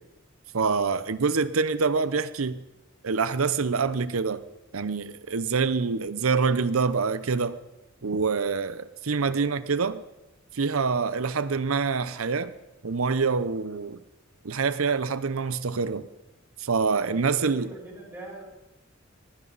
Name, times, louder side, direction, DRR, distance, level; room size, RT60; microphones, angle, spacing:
voice 1, 0.5-2.6 3.0-4.4 4.7-7.6 8.0-10.0 10.5-12.5 12.8-14.0 14.4-16.1 16.6-17.7, right 5 dB, 85° right, 0.7 m, -26 dB
voice 2, 17.1-18.4, right 1 dB, 10° right, 7.9 m, -42 dB
20.5 x 15.5 x 4.0 m
head